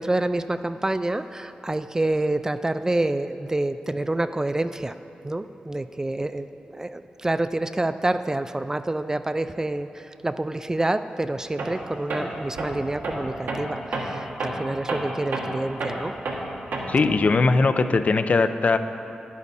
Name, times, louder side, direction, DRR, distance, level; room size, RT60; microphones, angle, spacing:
voice 1, 0.0-4.9 5.2-16.1, right 2 dB, 20° right, 11 dB, 0.3 m, -27 dB
Tools, 11.6-11.8 12.1-17.1, right 2 dB, 80° right, 1.3 m, -30 dB
voice 2, 16.9-18.8, left 3 dB, 50° left, 10 dB, 0.5 m, -20 dB
10.0 x 9.6 x 4.1 m, 2.8 s
cardioid pair, 65°, 3 cm